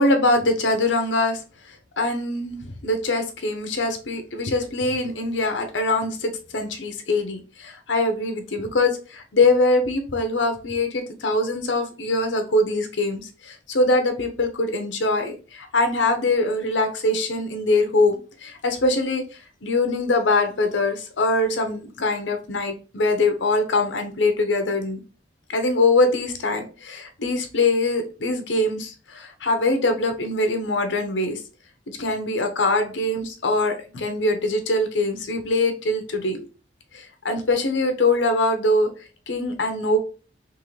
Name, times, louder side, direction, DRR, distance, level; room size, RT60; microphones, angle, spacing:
voice 1, 0.0-1.4 1.7-19.2 19.6-25.0 25.5-31.4 31.9-36.4 36.9-38.9 39.3-40.0, left 2 dB, 90° left, 5 dB, 0.8 m, -23 dB
3.7 x 3.2 x 3.2 m, 0.35 s
head